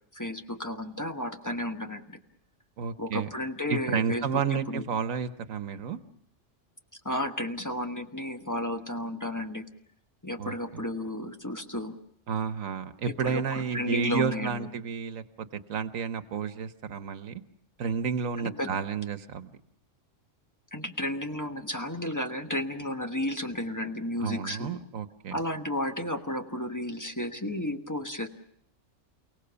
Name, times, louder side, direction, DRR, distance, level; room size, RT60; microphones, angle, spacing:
voice 1, 0.1-2.2 3.0-4.4 4.7-4.8 7.0-9.7 10.2-11.9 13.2-14.7 18.4-18.7 20.7-24.8 25.3-28.3, left 1 dB, 15° left, 5 dB, 1.2 m, -33 dB
voice 2, 2.8-3.3 3.7-6.0 10.4-10.8 12.3-17.4 17.8-19.5 24.2-25.4, right 6 dB, 90° right, 11 dB, 1.5 m, -31 dB
29.0 x 18.0 x 7.0 m, 0.72 s
omnidirectional pair, 1.3 m